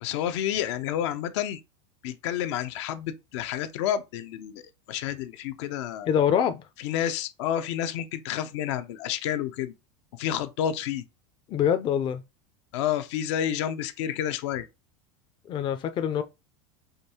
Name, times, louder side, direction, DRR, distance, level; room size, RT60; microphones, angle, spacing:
voice 1, 0.0-1.6 2.0-4.6 4.9-6.1 6.8-9.7 10.2-11.0 12.7-14.6, left 10 dB, 75° left, 0.6 m, -29 dB
voice 2, 6.1-6.6 11.5-12.2 15.5-16.2, left 9 dB, 35° left, 0.5 m, -24 dB
5.1 x 2.6 x 2.8 m
supercardioid pair, 125°, 15 cm